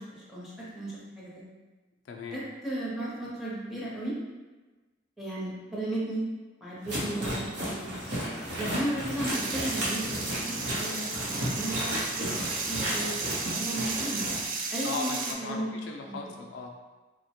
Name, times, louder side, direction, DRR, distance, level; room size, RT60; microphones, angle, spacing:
voice 1, 0.0-1.4 2.3-4.2 5.2-6.2 6.6-7.9 8.6-13.1 13.4-14.3 14.7-15.7 16.1-16.4, right 1 dB, ahead, -8 dB, 0.6 m, -35 dB
voice 2, 2.1-2.5 14.8-16.7, left 3 dB, 70° left, 1 dB, 0.3 m, -37 dB
sound 1, 6.9-14.4, equal, 65° right, 0.8 m, -33 dB
sound 2, 9.3-15.3, right 4 dB, 45° right, 0.3 m, -34 dB
3.0 x 2.1 x 2.8 m, 1.2 s
head